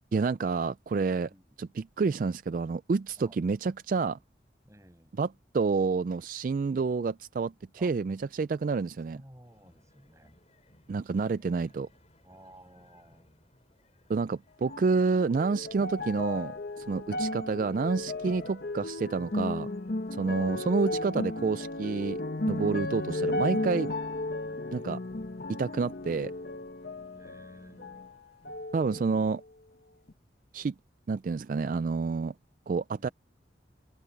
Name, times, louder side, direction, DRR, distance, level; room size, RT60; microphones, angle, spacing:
voice 1, 0.1-1.3 1.6-4.2 5.2-5.3 5.5-7.5 7.8-9.2 10.9-11.9 14.1-19.7 20.1-22.2 22.5-23.9 24.7-25.0 25.5-26.3 28.7-29.4 30.5-30.7 31.1-32.3 32.7-33.1, right 4 dB, 45° right, 0.3 m, -29 dB
voice 2, 1.1-1.6 3.2-3.4 4.6-5.2 7.8-7.9 9.1-10.4 12.2-13.4 20.4-20.6 24.4-24.6 27.1-28.0 32.9-33.1, right 1 dB, 15° right, 6.9 m, -55 dB
sound 1, 9.4-28.9, left 1 dB, 35° left, 6.4 m, -66 dB
sound 2, 14.6-28.1 28.4-29.4 30.1-30.2, left 2 dB, 55° left, 1.1 m, -35 dB
open air
head